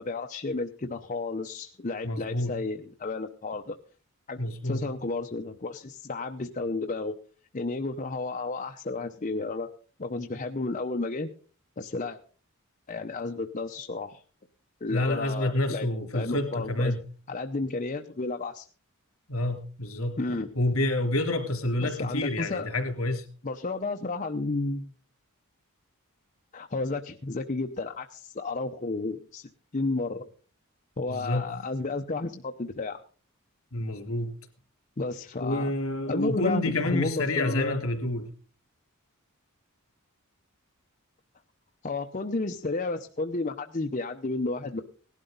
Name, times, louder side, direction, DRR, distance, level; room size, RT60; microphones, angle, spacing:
voice 1, 0.0-3.7 4.3-4.4 4.6-7.1 7.5-9.7 10.0-11.3 11.8-12.2 12.9-14.2 14.8-15.9 16.1-16.9 17.3-18.7 20.2-20.5 21.8-22.7 23.4-24.9 26.5-30.3 31.0-33.0 35.0-35.7 36.1-37.8 41.8-44.8, left 3 dB, 35° left, 4 dB, 0.7 m, -32 dB
voice 2, 2.0-2.5 4.4-4.8 14.9-17.0 19.3-20.2 20.6-23.3 31.1-31.5 33.7-34.3 35.4-38.3, left 1 dB, 70° left, 5 dB, 3.4 m, -28 dB
18.5 x 12.0 x 3.9 m, 0.40 s
head